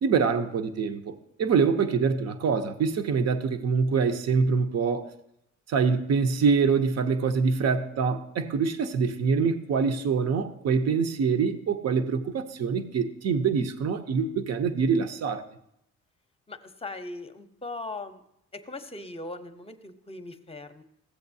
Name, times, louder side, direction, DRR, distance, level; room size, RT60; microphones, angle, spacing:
voice 1, 0.0-5.1 5.7-15.4, right 5 dB, 55° right, 0.8 m, -25 dB
voice 2, 16.5-18.2 18.5-20.8, left 2 dB, 20° left, 0.8 m, -39 dB
15.0 x 7.8 x 2.7 m
cardioid pair, 90°, 30 cm